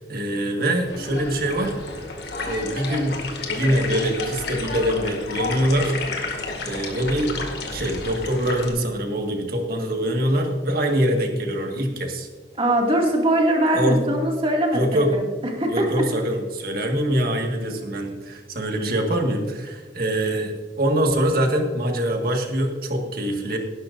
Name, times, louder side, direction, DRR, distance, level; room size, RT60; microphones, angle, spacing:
voice 1, 0.0-2.0 2.4-3.2 3.5-6.0 6.6-7.3 7.7-12.3 13.7-14.0 14.7-15.1 15.7-23.6, right 1 dB, 50° right, 2 dB, 1.7 m, -24 dB
sound 1, 0.8-8.7, left 3 dB, 60° left, 2.1 m, -31 dB
voice 2, 12.6-14.8 15.1-15.3 15.5-16.0, right 1 dB, 30° right, -1 dB, 2.2 m, -21 dB
17.0 x 12.0 x 2.6 m, 1.4 s
head